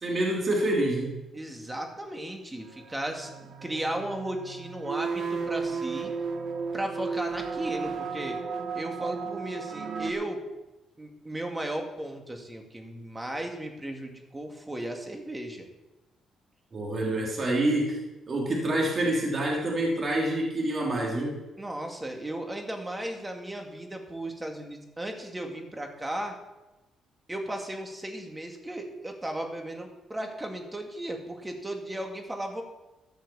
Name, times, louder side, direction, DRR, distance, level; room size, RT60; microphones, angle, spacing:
voice 1, 0.0-1.1 16.7-18.0 18.3-21.4, right 1 dB, 40° right, -2 dB, 3.3 m, -27 dB
voice 2, 1.3-6.1 6.7-8.4 8.7-10.4 11.0-15.7 21.6-26.4 27.3-32.6, right 1 dB, 15° right, 3 dB, 2.3 m, -35 dB
sound 1, 2.9-10.1, right 5 dB, 60° right, 1.3 m, -34 dB
14.0 x 6.3 x 7.1 m, 1.0 s
cardioid pair, 90°, 0 cm